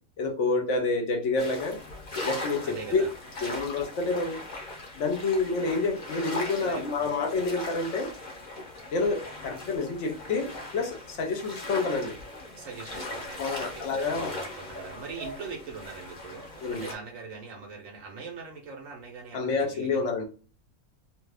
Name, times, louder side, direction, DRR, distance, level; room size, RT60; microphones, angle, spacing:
voice 1, 0.2-1.8 2.2-3.0 3.4-4.4 5.0-8.1 8.9-12.2 13.4-14.3 16.6-16.9 19.3-20.2, left 3 dB, 65° left, 0.9 m, -28 dB
sound 1, 1.4-16.9, left 2 dB, 45° left, 0.7 m, -39 dB
voice 2, 2.6-3.1 6.6-7.2 12.6-20.1, right 5 dB, 75° right, 1.1 m, -42 dB
2.7 x 2.4 x 3.3 m
omnidirectional pair, 1.4 m